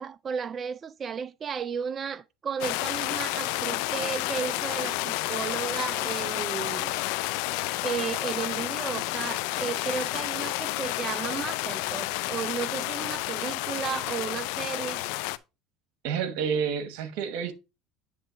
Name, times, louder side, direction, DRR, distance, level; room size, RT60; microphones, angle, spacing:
voice 1, 0.0-6.9 7.8-15.0, right 7 dB, 35° right, 0.4 m, -34 dB
sound 1, 2.6-15.4, left 18 dB, 75° left, 0.4 m, -30 dB
sound 2, 3.5-9.9, left 6 dB, 35° left, 1.7 m, -50 dB
voice 2, 16.0-17.5, right 7 dB, 70° right, 1.1 m, -29 dB
9.6 x 3.2 x 5.0 m
supercardioid pair, 90°, 0 cm